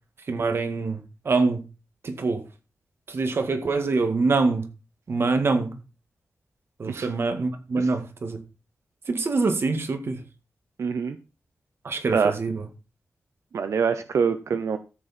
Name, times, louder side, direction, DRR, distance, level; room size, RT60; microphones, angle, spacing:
voice 1, 0.3-1.6 2.0-2.4 3.1-4.7 5.1-5.8 6.8-8.4 9.1-10.2 11.8-12.6, right 3 dB, 55° right, 1.9 m, -25 dB
voice 2, 10.8-11.2 12.1-12.4 13.5-14.8, right 6 dB, 90° right, 0.8 m, -25 dB
14.0 x 7.9 x 4.3 m
wide cardioid pair, 155°, 5 cm